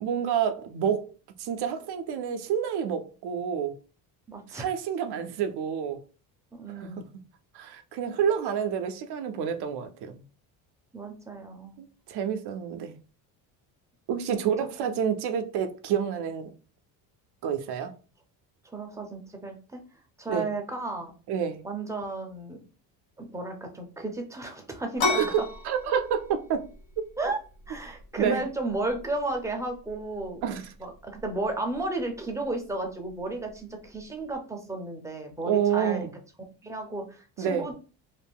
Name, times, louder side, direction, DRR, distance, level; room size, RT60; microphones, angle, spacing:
voice 1, 0.0-1.1 1.4-3.7 4.5-6.0 6.8-7.2 7.5-10.2 11.8-13.0 14.1-16.5 17.4-17.9 20.3-20.5 21.3-21.6 25.1-26.6 28.2-28.4 30.4-30.6 35.4-36.1 37.4-37.7, right 8 dB, 60° right, 0.6 m, -28 dB
voice 2, 4.3-4.7 6.6-7.0 10.9-11.8 14.3-14.4 18.7-19.8 20.2-21.1 21.6-22.6 23.2-25.2 27.2-27.4 27.7-30.4 30.8-36.1 36.6-37.7, right 2 dB, 5° right, 0.6 m, -33 dB
sound 1, 25.0-34.4, left 3 dB, 80° left, 1.0 m, -37 dB
2.6 x 2.1 x 3.5 m
cardioid pair, 110°, 46 cm